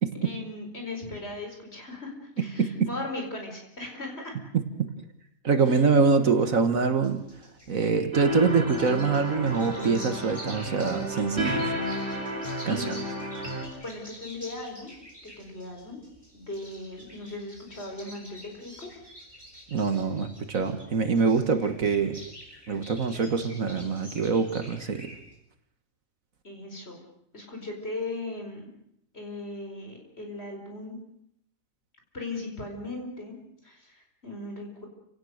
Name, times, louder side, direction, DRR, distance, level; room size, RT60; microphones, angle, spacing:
voice 1, 0.2-4.4 5.7-5.8 12.6-13.0 13.8-14.9 15.4-16.0 16.3-18.7 21.8-21.9 26.4-27.0 27.3-28.7 29.1-31.0 32.1-33.4 33.6-34.9, left 2 dB, 40° left, 2 dB, 5.0 m, -38 dB
voice 2, 2.4-2.9 4.5-4.9 5.4-7.2 7.7-11.7 12.7-12.8 19.7-22.1 22.7-25.1, right 5 dB, 60° right, 8 dB, 1.8 m, -24 dB
sound 1, 6.8-25.3, equal, 15° left, 6.8 m, -48 dB
sound 2, 8.1-13.7, left 1 dB, 35° right, 3.5 m, -32 dB
29.0 x 17.5 x 6.5 m, 0.74 s
omnidirectional pair, 1.6 m